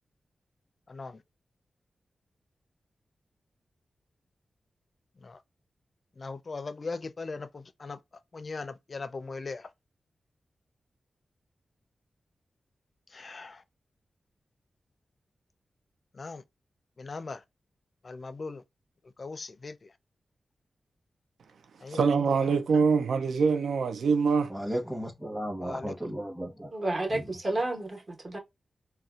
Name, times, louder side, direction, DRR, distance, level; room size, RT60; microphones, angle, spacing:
voice 1, 0.9-1.2 5.2-5.4 6.2-8.0 8.3-9.7 13.1-13.6 16.2-16.4 17.0-17.4 18.0-18.6 19.2-19.8 21.8-22.0 25.6-25.9, left 3 dB, 50° left, 0.4 m, -39 dB
voice 2, 21.9-24.5, right 5 dB, 90° right, 0.3 m, -24 dB
voice 3, 24.5-26.7 27.1-27.2, equal, 5° right, 0.8 m, -34 dB
voice 4, 26.7-28.4, right 2 dB, 45° right, 1.1 m, -31 dB
4.0 x 2.2 x 2.4 m
cardioid pair, 70°, 0 cm